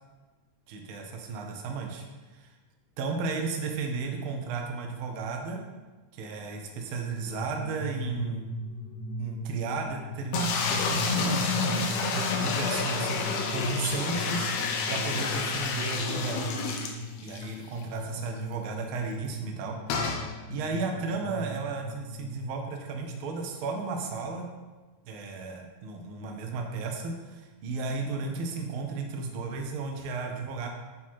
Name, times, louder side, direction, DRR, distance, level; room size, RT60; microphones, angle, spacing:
voice 1, 0.7-2.0 2.3-2.5 3.0-5.6 6.1-8.4 9.2-14.5 14.9-16.5 17.2-19.8 20.5-24.5 25.1-30.7, right 4 dB, 85° right, 2 dB, 1.1 m, -34 dB
sound 1, 7.1-22.4, left 1 dB, 65° left, 2.1 m, -39 dB
sound 2, 10.3-17.5 17.8-17.9 18.1-18.2 19.9-20.3, left 4 dB, 80° left, 1.8 m, -29 dB
6.0 x 3.7 x 4.3 m, 1.3 s
omnidirectional pair, 3.3 m